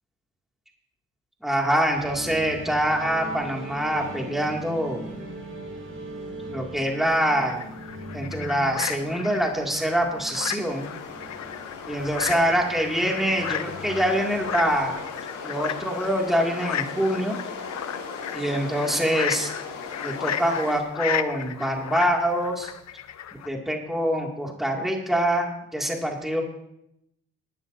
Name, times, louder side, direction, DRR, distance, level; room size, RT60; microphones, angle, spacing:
voice 1, 1.4-5.1 6.5-7.7 8.1-10.9 11.9-15.0 15.4-17.4 18.3-19.5 20.0-22.7 23.5-26.4, equal, ahead, 0 dB, 2.4 m, -25 dB
sound 1, 1.9-15.0, right 1 dB, 45° right, 4.9 m, -40 dB
sound 2, 7.0-23.5, left 10 dB, 55° left, 0.7 m, -34 dB
sound 3, 10.6-20.8, left 5 dB, 80° left, 2.3 m, -38 dB
19.5 x 11.0 x 2.7 m, 0.82 s
supercardioid pair, 65°, 32 cm